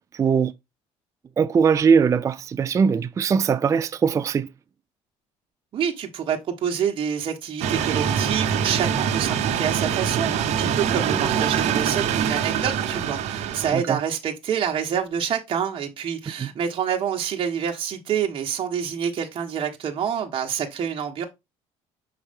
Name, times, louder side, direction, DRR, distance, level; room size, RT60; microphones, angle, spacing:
voice 1, 0.1-0.5 1.4-4.5 13.7-14.0 16.4-16.5, right 6 dB, 25° right, 0.4 m, -20 dB
voice 2, 5.7-21.3, right 8 dB, 45° right, 1.2 m, -27 dB
sound 1, 7.6-13.7, right 8 dB, 65° right, 1.0 m, -24 dB
6.4 x 4.7 x 3.5 m
cardioid pair, 110°, 12 cm